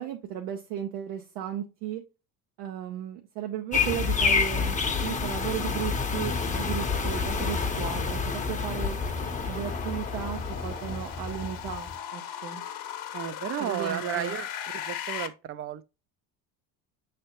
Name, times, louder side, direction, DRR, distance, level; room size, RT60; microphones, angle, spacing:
voice 1, 0.0-2.0 2.6-9.0 9.5-12.6 13.6-14.4, right 10 dB, 80° right, 0.7 m, -35 dB
sound 1, 3.7-12.0, left 5 dB, 20° left, 0.7 m, -29 dB
sound 2, 6.4-15.3, left 10 dB, 50° left, 0.8 m, -40 dB
voice 2, 13.1-14.5 14.7-15.8, right 11 dB, 35° right, 0.4 m, -33 dB
5.6 x 3.3 x 2.9 m
supercardioid pair, 75°, 43 cm